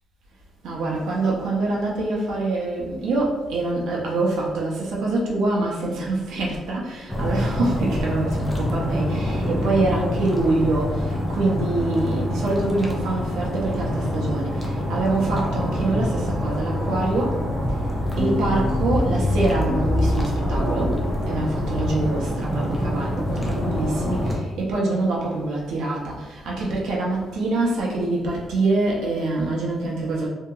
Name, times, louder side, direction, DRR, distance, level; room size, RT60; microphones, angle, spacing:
voice 1, 0.6-17.4 18.2-30.3, right 2 dB, 80° right, -4 dB, 0.6 m, -25 dB
sound 1, 7.1-24.4, left 1 dB, 10° left, 0.4 m, -26 dB
sound 2, 17.4-22.1, equal, 55° left, 0.7 m, -26 dB
2.8 x 2.7 x 2.3 m, 1.1 s
cardioid pair, 165°, 0 cm